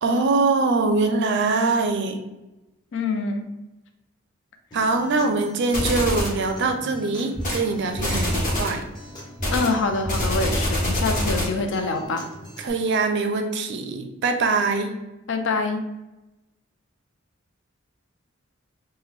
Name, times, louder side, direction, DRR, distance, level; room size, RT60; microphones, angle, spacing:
voice 1, 0.0-2.2 4.7-8.8 12.6-14.9, right 3 dB, 55° right, 6 dB, 0.4 m, -23 dB
voice 2, 2.9-3.5 9.5-12.3 15.3-15.9, left 3 dB, 65° left, 6 dB, 0.4 m, -25 dB
Acoustic guitar, 4.7-12.7, equal, 20° left, 0.8 m, -42 dB
sound 1, 5.7-6.4 7.3-7.6 8.0-8.8 9.4-11.6, equal, 40° left, 1.2 m, -25 dB
3.1 x 2.1 x 3.4 m, 1.0 s
head